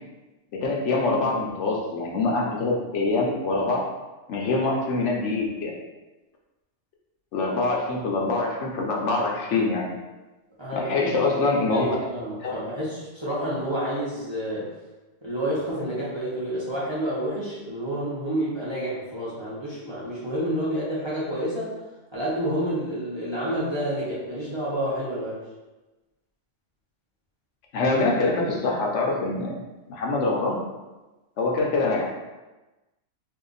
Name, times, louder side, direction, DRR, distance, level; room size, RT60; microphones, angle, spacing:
voice 1, 0.5-3.9 4.3-5.7 7.3-10.0 10.8-11.9 12.4-12.5 27.7-29.6 29.9-30.6 31.4-32.2, left 3 dB, 75° left, -1 dB, 1.0 m, -24 dB
voice 2, 10.6-11.1 11.7-14.7 15.2-21.7 22.1-25.4, right 1 dB, 25° right, -9 dB, 0.8 m, -29 dB
2.7 x 2.4 x 3.8 m, 1.1 s
omnidirectional pair, 1.2 m